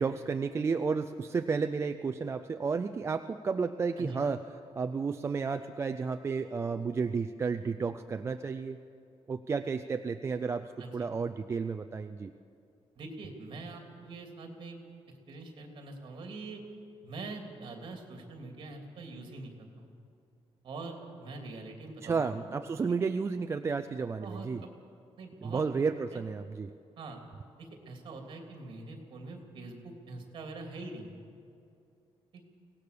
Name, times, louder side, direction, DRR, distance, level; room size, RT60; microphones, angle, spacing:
voice 1, 0.0-4.4 4.8-8.8 9.3-12.3 22.0-24.6 25.4-26.7, right 5 dB, 25° right, 8 dB, 0.4 m, -32 dB
voice 2, 10.8-11.1 13.0-14.8 15.3-16.6 17.0-19.9 20.6-22.3 24.2-24.7 25.2-25.6 26.1-26.2 27.0-27.2 27.6-31.1 32.3-32.4, right 3 dB, 50° right, 3 dB, 3.0 m, -44 dB
23.5 x 18.0 x 6.8 m, 2.5 s
wide cardioid pair, 175°, 11 cm